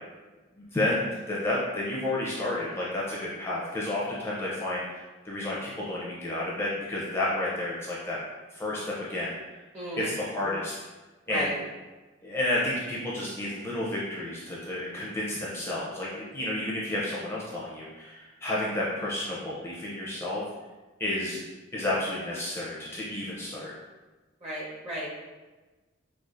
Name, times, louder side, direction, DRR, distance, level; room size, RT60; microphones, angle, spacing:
voice 1, 0.6-8.2 8.5-9.4 10.0-10.7 11.3-11.5 12.2-20.4 21.0-21.4 21.7-23.7, left 1 dB, 15° left, -6 dB, 0.5 m, -31 dB
voice 2, 9.7-10.2 11.3-11.5 24.4-25.1, equal, 35° right, -6 dB, 0.9 m, -34 dB
4.6 x 2.4 x 2.5 m, 1.2 s
head